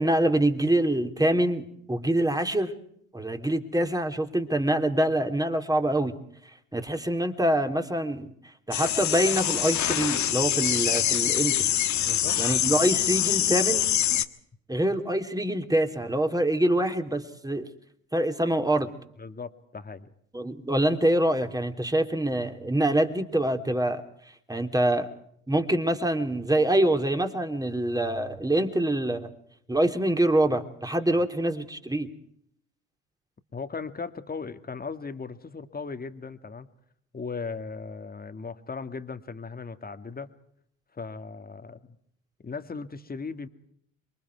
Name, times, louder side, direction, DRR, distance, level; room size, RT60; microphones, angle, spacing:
voice 1, 0.0-2.7 3.1-6.1 6.7-8.3 8.7-11.7 12.4-13.9 14.7-17.7 18.1-18.9 20.3-24.0 24.5-25.1 25.5-29.3 29.7-32.1, right 1 dB, 10° right, 6 dB, 3.0 m, -25 dB
sound 1, 8.7-14.2, left 11 dB, 50° left, 1.6 m, -25 dB
voice 2, 12.0-12.4 19.2-20.1 33.5-36.7 37.1-40.3 40.9-41.8 42.4-43.5, left 4 dB, 25° left, 9 dB, 2.1 m, -37 dB
28.0 x 23.5 x 4.7 m, 0.69 s
hypercardioid pair, 60°, 37 cm